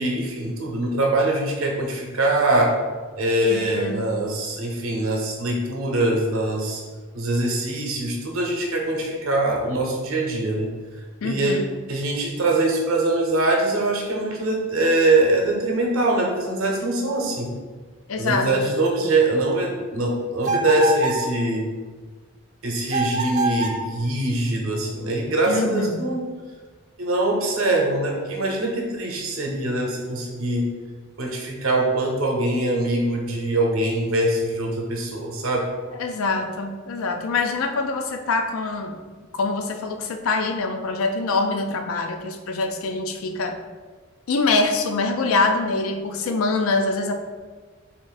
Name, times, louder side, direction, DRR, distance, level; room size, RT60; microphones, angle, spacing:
voice 1, 0.0-2.8 3.1-6.8 7.1-10.7 11.2-11.6 11.9-17.5 18.2-21.6 22.6-26.2 27.0-30.7 31.2-35.7, right 2 dB, 80° right, 0 dB, 0.8 m, -23 dB
voice 2, 3.5-4.1 11.2-11.7 18.1-18.6 25.5-25.9 36.0-39.0 39.3-43.6 44.3-47.2, left 3 dB, 80° left, 5 dB, 0.4 m, -24 dB
sound 1, 20.4-21.3 22.9-23.9, right 3 dB, 35° right, 0.4 m, -24 dB
3.8 x 2.5 x 3.9 m, 1.4 s
head